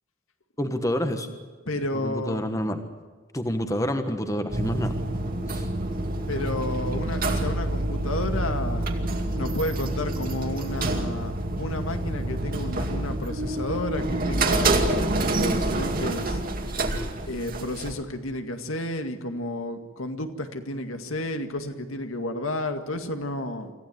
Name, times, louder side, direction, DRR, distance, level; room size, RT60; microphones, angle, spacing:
voice 1, 0.6-1.3 1.9-2.8 3.3-4.9 5.5-5.7, equal, 15° left, 7 dB, 1.4 m, -28 dB
voice 2, 1.7-2.4 6.3-8.9 9.3-11.3 11.6-16.4 17.2-23.7, left 1 dB, 80° left, 7 dB, 2.0 m, -31 dB
Elevator Way, 4.5-17.9, right 2 dB, 40° right, 2.3 m, -27 dB
26.0 x 15.5 x 9.5 m, 1.4 s
head